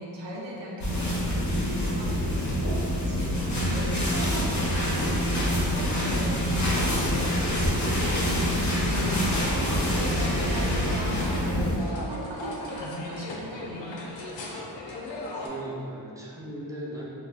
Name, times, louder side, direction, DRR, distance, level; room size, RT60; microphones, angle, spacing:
voice 1, 0.0-2.5 2.9-7.5 8.1-14.1, right 1 dB, 75° right, -3 dB, 0.6 m, -38 dB
sound 1, 0.8-11.8, equal, 40° left, 0.8 m, -26 dB
voice 2, 3.4-4.0 15.4-17.1, right 1 dB, 10° right, -5 dB, 0.5 m, -38 dB
sound 2, 8.9-15.5, left 2 dB, 85° left, 0.5 m, -37 dB
2.3 x 2.1 x 3.1 m, 2.5 s
cardioid pair, 40°, 44 cm